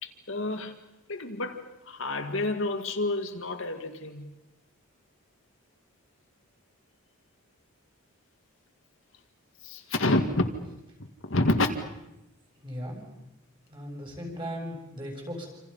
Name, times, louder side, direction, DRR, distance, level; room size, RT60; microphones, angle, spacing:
voice 1, 0.0-0.8 1.1-4.3 9.6-10.5 11.2-11.7, left 2 dB, 60° left, 5 dB, 2.0 m, -28 dB
voice 2, 12.6-13.0 13.7-15.5, equal, 20° right, 1 dB, 7.2 m, -37 dB
28.0 x 27.5 x 5.7 m, 0.90 s
head